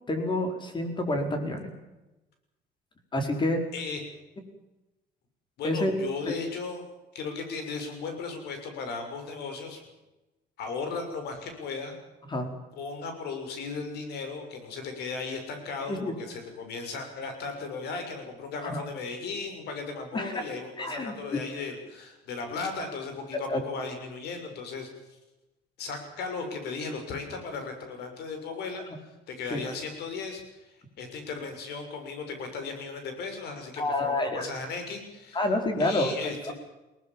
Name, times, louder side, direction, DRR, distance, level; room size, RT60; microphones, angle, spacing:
voice 1, 0.1-1.7 3.1-3.6 5.6-5.9 6.3-6.4 12.3-12.5 15.9-16.1 18.6-18.8 20.1-20.5 20.8-21.4 23.3-23.6 29.5-29.6 33.8-34.5 35.3-36.3, left 1 dB, 25° left, 5 dB, 5.1 m, -28 dB
voice 2, 5.6-6.9 7.1-9.8 10.6-12.0 12.8-24.9 25.8-28.8 29.3-30.4 31.0-35.4 35.8-36.5, left 4 dB, 75° left, 6 dB, 6.6 m, -36 dB
22.0 x 19.0 x 7.4 m, 1.0 s
cardioid pair, 110°, 17 cm